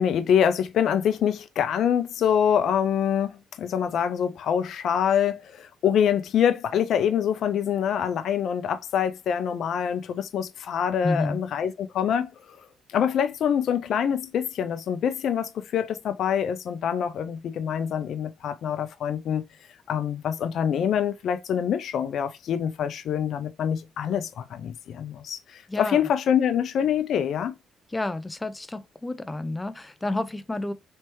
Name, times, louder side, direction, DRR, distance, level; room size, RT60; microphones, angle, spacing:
voice 1, 0.0-12.6 12.9-19.4 19.9-27.5, left 8 dB, 70° left, 0.5 m, -25 dB
voice 2, 11.0-11.4 25.7-26.0 27.9-30.7, left 2 dB, 15° left, 0.5 m, -30 dB
3.3 x 2.9 x 3.0 m
cardioid pair, 90°, 0 cm